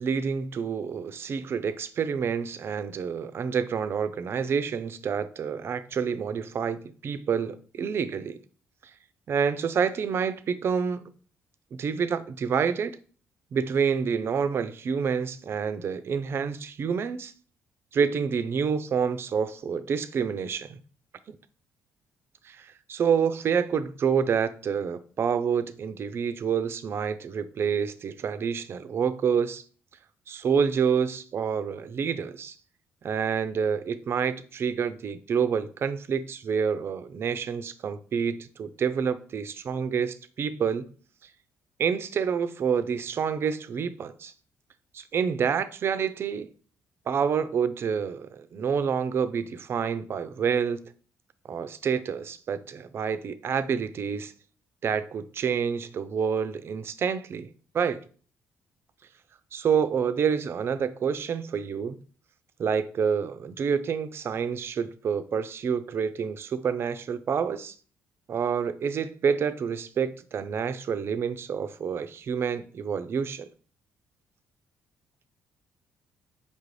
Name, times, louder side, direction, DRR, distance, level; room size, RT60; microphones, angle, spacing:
voice 1, 0.0-8.4 9.3-11.0 11.7-13.0 13.5-17.3 17.9-20.8 21.3-21.4 22.5-29.6 30.3-32.5 33.0-40.9 41.8-44.3 44.9-46.5 47.1-50.8 51.5-54.3 54.8-57.5 57.7-58.0 59.5-62.0 62.6-67.7 68.3-73.5, right 6 dB, 50° right, 0.4 m, -28 dB
5.2 x 2.5 x 3.1 m
supercardioid pair, 65°, 5 cm